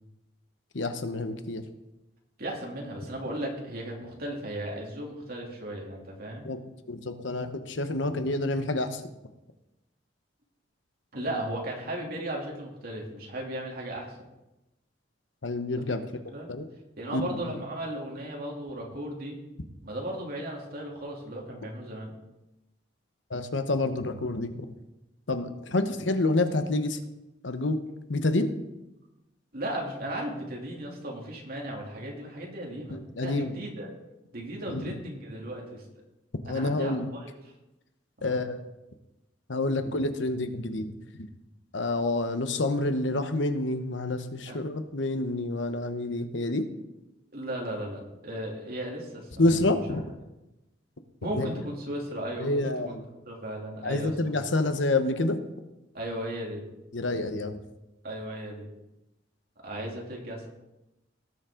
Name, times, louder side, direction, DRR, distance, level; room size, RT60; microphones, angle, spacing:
voice 1, 0.7-1.6 6.4-6.6 6.9-9.0 15.4-16.0 16.5-16.6 17.1-17.6 23.3-24.7 25.3-27.0 27.4-27.8 28.1-28.5 32.9-33.6 34.7-34.9 36.4-37.1 38.2-38.6 39.5-40.9 41.2-41.3 41.7-46.7 49.4-50.0 51.3-51.5 52.4-53.0 53.8-55.4 56.9-57.6, left 2 dB, 75° left, 8 dB, 1.0 m, -28 dB
voice 2, 2.4-6.5 11.1-14.1 15.9-16.0 16.3-16.5 17.0-19.4 19.8-22.1 26.1-26.2 29.5-33.9 34.3-35.8 36.5-37.3 38.2-38.5 44.5-44.6 47.3-49.3 51.2-52.9 53.3-54.4 55.9-56.6 58.0-58.7 59.6-60.5, right 1 dB, 55° right, -1 dB, 2.8 m, -36 dB
18.0 x 7.3 x 3.8 m, 0.96 s
head